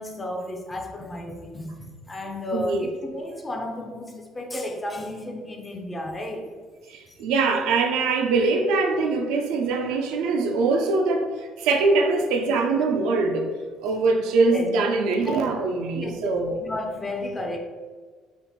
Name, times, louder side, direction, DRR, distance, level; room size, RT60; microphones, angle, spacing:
voice 1, 0.0-6.5 14.5-14.7 15.3-15.4 15.9-17.6, left 1 dB, 15° left, 2 dB, 0.4 m, -33 dB
voice 2, 2.5-2.9 7.2-11.3 11.6-13.5 13.8-16.6, right 3 dB, 90° right, 4 dB, 0.5 m, -22 dB
3.4 x 2.4 x 4.0 m, 1.5 s
cardioid pair, 150°, 0 cm